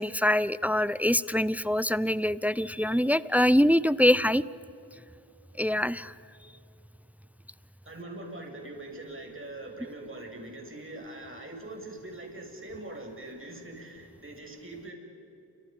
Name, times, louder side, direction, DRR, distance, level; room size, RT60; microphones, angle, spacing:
voice 1, 0.0-4.4 5.6-6.1, left 1 dB, 5° right, 18 dB, 0.5 m, -24 dB
voice 2, 7.9-14.9, right 2 dB, 30° right, 1 dB, 7.2 m, -42 dB
29.5 x 27.0 x 5.4 m, 2.9 s
cardioid pair, 60°, 43 cm